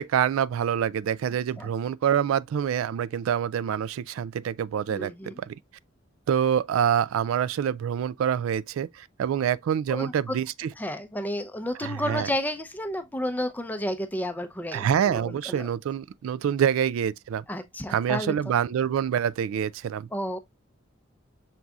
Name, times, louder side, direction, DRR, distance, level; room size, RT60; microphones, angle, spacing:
voice 1, 0.0-5.5 6.3-10.7 11.8-12.3 14.7-17.4 17.9-20.1, right 8 dB, 80° right, 0.3 m, -26 dB
voice 2, 4.9-5.4 9.9-10.4 10.8-15.7 17.5-18.6 20.1-20.4, left 1 dB, 10° left, 0.5 m, -32 dB
6.0 x 4.0 x 2.3 m
head